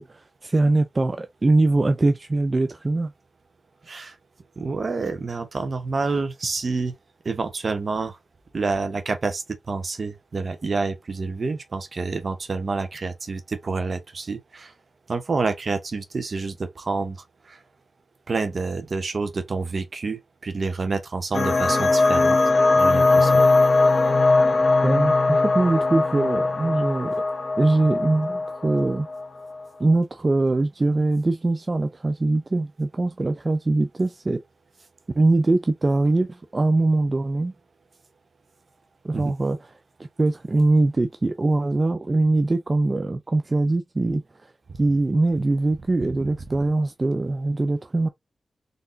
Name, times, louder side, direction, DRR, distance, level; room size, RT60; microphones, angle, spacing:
voice 1, 0.0-3.1 24.8-27.1 27.6-29.1 29.8-34.4 35.2-37.5 39.0-39.6 40.2-44.5 44.8-48.1, right 2 dB, 40° right, 0.5 m, -22 dB
voice 2, 4.6-6.9 7.2-8.2 8.5-14.7 15.1-17.2 17.5-17.6 18.3-22.4 22.7-23.4 39.1-39.3, right 4 dB, 60° right, 0.9 m, -28 dB
sound 1, 21.3-29.6, left 3 dB, 60° left, 1.3 m, -20 dB
3.9 x 3.5 x 2.6 m
cardioid pair, 55°, 0 cm